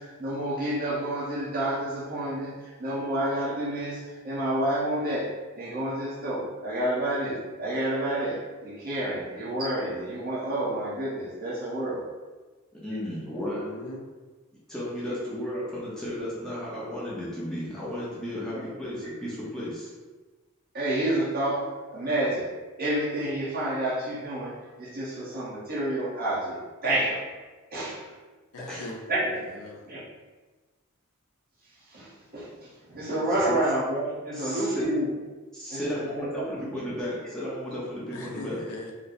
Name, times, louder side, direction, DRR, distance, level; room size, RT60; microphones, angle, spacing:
voice 1, 0.0-12.0 12.9-13.0 18.5-18.7 20.7-21.6 21.9-22.5 22.8-27.3 27.7-28.0 29.1-29.5 29.9-30.0 31.9-35.1 35.7-36.8, right 1 dB, 45° right, -7 dB, 1.0 m, -29 dB
voice 2, 12.7-13.6 14.7-19.9 27.9-28.0 28.7-28.9 33.4-33.6 34.3-34.9 35.5-38.6, equal, 5° left, -8 dB, 0.6 m, -34 dB
voice 3, 13.4-14.0 28.5-29.9 38.1-38.9, left 2 dB, 80° left, 0 dB, 0.6 m, -41 dB
3.1 x 2.0 x 4.2 m, 1.3 s
head